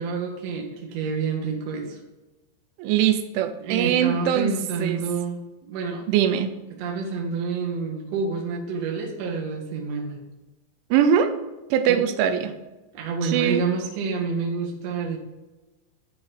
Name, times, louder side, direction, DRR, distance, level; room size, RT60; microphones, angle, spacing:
voice 1, 0.0-2.0 3.6-6.0 6.8-10.2 11.9-12.1 12.9-15.2, right 4 dB, 65° right, 1 dB, 1.7 m, -28 dB
voice 2, 2.8-4.5 4.8-5.0 6.1-6.5 10.9-11.3 11.7-12.5 13.2-13.6, right 9 dB, 90° right, 9 dB, 3.2 m, -21 dB
11.5 x 5.3 x 3.9 m, 1.1 s
omnidirectional pair, 5.3 m